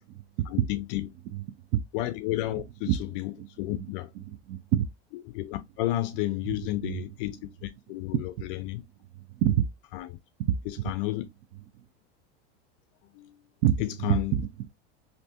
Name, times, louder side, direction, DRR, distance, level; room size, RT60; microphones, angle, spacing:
voice 1, 0.5-1.1 1.9-3.3 3.6-4.1 5.3-7.4 7.6-8.8 9.9-10.1 10.7-11.3 13.2-13.4 13.8-14.3, left 16 dB, 60° left, 0.5 m, -31 dB
voice 2, 3.4-4.8 6.4-7.0 8.2-8.3 9.4-9.6 10.5-10.6 13.6-14.7, right 11 dB, 50° right, 0.4 m, -28 dB
3.3 x 2.7 x 2.8 m
supercardioid pair, 140°, 32 cm